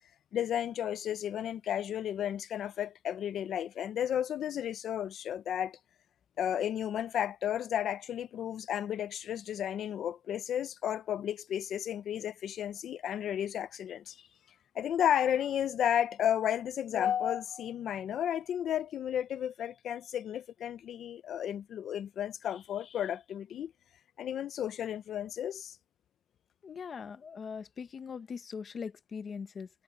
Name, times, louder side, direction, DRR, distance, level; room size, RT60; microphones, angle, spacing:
voice 1, 0.3-5.8 6.4-14.2 14.7-23.7 24.2-25.8, left 10 dB, 65° left, 0.6 m, -33 dB
voice 2, 26.6-29.7, left 6 dB, 40° left, 1.0 m, -41 dB
cardioid pair, 165°, 0 cm